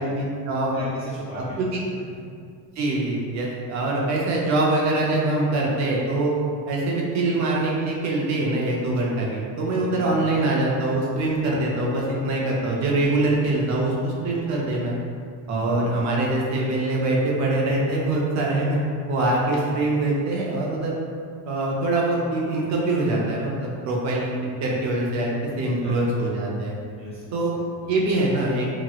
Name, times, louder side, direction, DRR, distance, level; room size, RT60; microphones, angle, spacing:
voice 1, 0.0-0.7 1.3-1.7 2.8-6.3 6.7-15.0 15.5-18.8 19.1-21.0 21.5-24.3 24.6-25.3 25.6-26.8 27.3-27.5 27.9-28.7, right 2 dB, 45° right, -3 dB, 0.5 m, -23 dB
voice 2, 0.7-1.7 9.8-10.4 15.5-15.9 25.4-26.1 26.9-28.1, equal, 15° left, -11 dB, 0.3 m, -39 dB
2.9 x 2.9 x 2.3 m, 2.2 s
cardioid pair, 160°, 42 cm